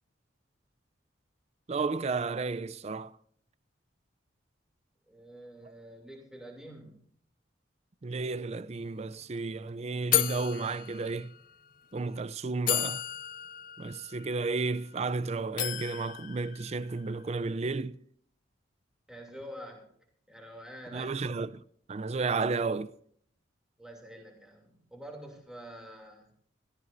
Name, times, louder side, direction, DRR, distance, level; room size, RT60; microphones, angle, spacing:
voice 1, 1.7-3.1 5.6-5.7 8.0-11.3 11.9-13.0 13.8-18.0 20.9-21.6 21.9-22.9, right 3 dB, 35° right, 0.4 m, -32 dB
voice 2, 5.1-7.0 19.1-19.9 20.3-21.2 23.8-26.3, equal, 5° right, 2.7 m, -47 dB
sound 1, 8.8-8.9 9.1-9.4 10.1-11.5 12.2-12.3 12.7-15.1 15.6-17.2, left 12 dB, 45° left, 0.4 m, -33 dB
16.5 x 14.0 x 2.6 m
head